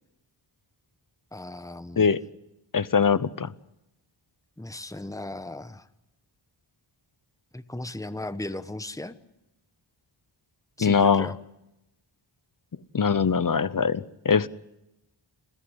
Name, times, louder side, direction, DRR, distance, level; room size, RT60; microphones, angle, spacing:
voice 1, 1.3-2.1 4.6-5.9 7.5-9.2 10.8-11.4, left 2 dB, 5° left, 13 dB, 1.0 m, -36 dB
voice 2, 2.7-3.5 10.8-11.3 12.9-14.5, left 6 dB, 40° left, 18 dB, 0.9 m, -22 dB
28.5 x 15.0 x 8.1 m, 0.91 s
wide cardioid pair, 80°, 48 cm